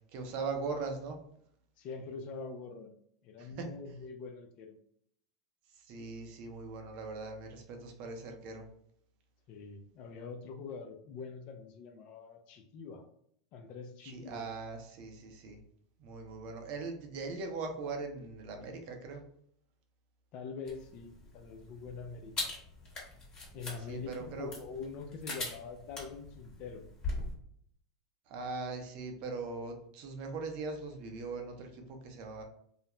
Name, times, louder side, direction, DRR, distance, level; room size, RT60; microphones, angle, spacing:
voice 1, 0.1-1.2 3.4-3.7 5.8-8.7 14.0-15.6 16.0-19.2 23.9-24.5 28.3-32.4, right 4 dB, 55° right, 4 dB, 0.6 m, -40 dB
voice 2, 1.8-3.0 3.2-4.8 9.5-13.0 13.5-14.5 20.3-22.6 23.5-26.9, left 5 dB, 50° left, 6 dB, 0.5 m, -44 dB
sound 1, 20.7-27.3, left 2 dB, 30° left, 1.1 m, -42 dB
2.4 x 2.0 x 2.9 m, 0.66 s
hypercardioid pair, 110°, 3 cm